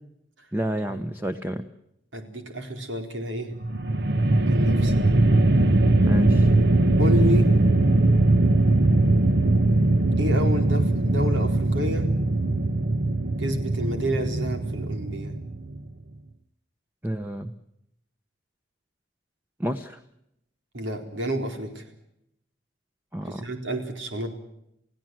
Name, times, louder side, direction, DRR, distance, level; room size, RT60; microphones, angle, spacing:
voice 1, 0.5-1.6 6.1-6.5 17.0-17.6 19.6-20.0 23.1-23.5, right 1 dB, 10° right, 8 dB, 0.9 m, -30 dB
voice 2, 2.1-3.5 4.5-5.0 7.0-7.5 10.2-12.1 13.4-15.3 20.7-21.9 23.2-24.3, equal, 85° right, 5 dB, 4.2 m, -30 dB
sound 1, 3.6-15.9, right 2 dB, 60° right, 1.2 m, -21 dB
29.5 x 16.5 x 7.8 m, 0.81 s
head